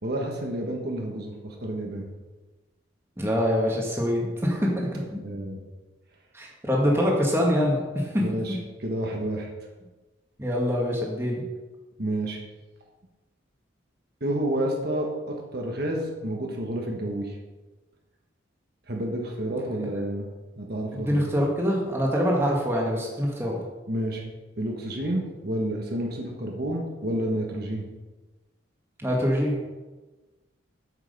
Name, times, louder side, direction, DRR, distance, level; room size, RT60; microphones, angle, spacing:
voice 1, 0.0-2.1 5.2-5.6 8.2-9.5 12.0-12.4 14.2-17.4 18.9-20.3 20.6-21.2 23.9-24.3 24.6-27.9, right 1 dB, 50° right, 0 dB, 1.4 m, -30 dB
voice 2, 3.2-5.2 6.3-8.2 10.4-11.4 20.9-23.6 29.0-29.6, equal, 10° right, -2 dB, 1.6 m, -24 dB
8.1 x 7.5 x 5.4 m, 1.2 s
head